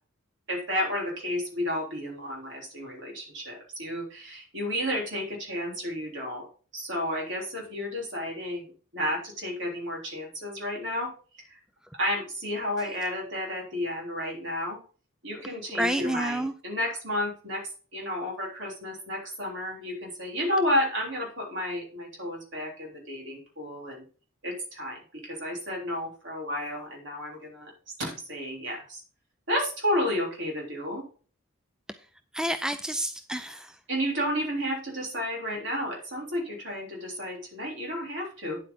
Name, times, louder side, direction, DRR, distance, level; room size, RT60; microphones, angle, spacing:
voice 1, 0.5-6.5 6.7-8.6 8.9-11.1 11.5-11.6 12.0-14.8 15.2-24.0 24.4-27.7 28.0-29.0 29.5-31.1 33.9-38.6, left 1 dB, 60° right, -1 dB, 3.6 m, -31 dB
voice 2, 15.8-16.5 32.3-33.7, right 1 dB, 5° right, 10 dB, 0.3 m, -29 dB
9.2 x 8.0 x 3.8 m, 0.40 s
head